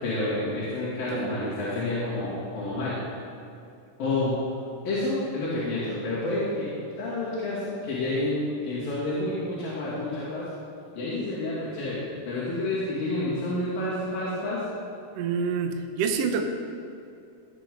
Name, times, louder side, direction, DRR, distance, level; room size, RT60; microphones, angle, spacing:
voice 1, 0.0-3.0 4.0-4.4 4.8-6.7 7.0-10.5 10.9-14.6, left 2 dB, 85° left, -11 dB, 4.3 m, -29 dB
voice 2, 1.1-1.5 15.1-16.4, right 5 dB, 80° right, 5 dB, 1.4 m, -27 dB
17.5 x 7.9 x 3.8 m, 2.5 s
omnidirectional pair, 4.0 m